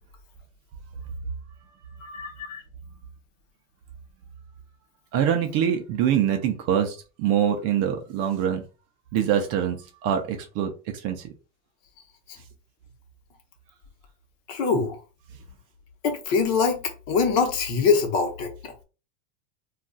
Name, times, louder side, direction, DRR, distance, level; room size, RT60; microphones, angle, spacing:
voice 1, 2.0-2.6 14.5-15.0 16.0-18.7, left 5 dB, 50° left, 1.0 m, -24 dB
voice 2, 5.1-8.6 9.1-11.2, right 9 dB, 40° right, 0.4 m, -24 dB
2.4 x 2.2 x 3.8 m
supercardioid pair, 145°, 43 cm